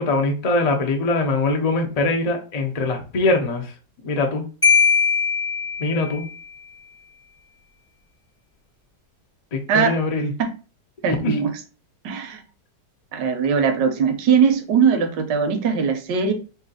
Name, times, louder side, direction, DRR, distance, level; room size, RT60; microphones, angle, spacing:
voice 1, 0.0-3.7 4.0-4.5 5.8-6.3 9.5-10.3 11.1-11.4, left 2 dB, 80° left, 0.3 m, -22 dB
Marimba xylophone, 4.6-6.4, left 6 dB, 15° left, 0.5 m, -20 dB
voice 2, 9.7-10.0 10.4-10.5 11.0-11.5 12.0-12.4 13.1-16.3, right 6 dB, 85° right, 1.4 m, -20 dB
3.2 x 2.7 x 3.8 m
omnidirectional pair, 1.8 m